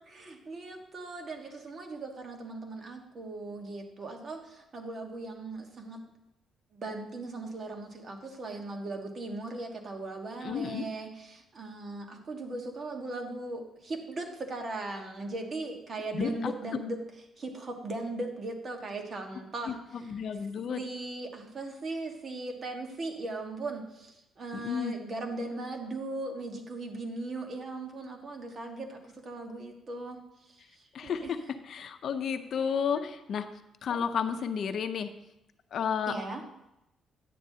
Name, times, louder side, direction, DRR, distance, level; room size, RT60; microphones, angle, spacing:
voice 1, 0.1-6.0 6.7-17.0 17.4-19.7 20.1-20.2 20.7-31.3 36.1-36.4, right 2 dB, 45° right, 3 dB, 1.4 m, -38 dB
voice 2, 10.4-10.8 16.1-16.5 19.7-20.8 24.5-24.9 30.9-33.5 33.8-35.1 35.7-36.2, left 7 dB, 60° left, 9 dB, 0.6 m, -32 dB
10.5 x 8.8 x 2.8 m, 0.90 s
cardioid pair, 90°, 0 cm